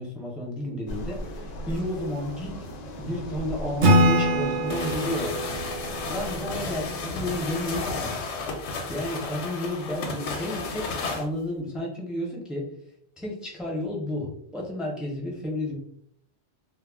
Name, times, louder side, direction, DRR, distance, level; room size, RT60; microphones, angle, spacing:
voice 1, 0.0-2.6 3.0-5.4 6.1-8.2 8.9-12.7 13.2-15.7, left 1 dB, ahead, -2 dB, 0.4 m, -32 dB
sound 1, 0.9-8.0, left 1 dB, 55° left, 0.5 m, -38 dB
Acoustic guitar / Strum, 3.8-7.3, right 1 dB, 60° right, 0.6 m, -24 dB
sound 2, 4.7-11.3, left 3 dB, 80° left, 0.8 m, -33 dB
2.3 x 2.0 x 3.4 m, 0.71 s
omnidirectional pair, 1.1 m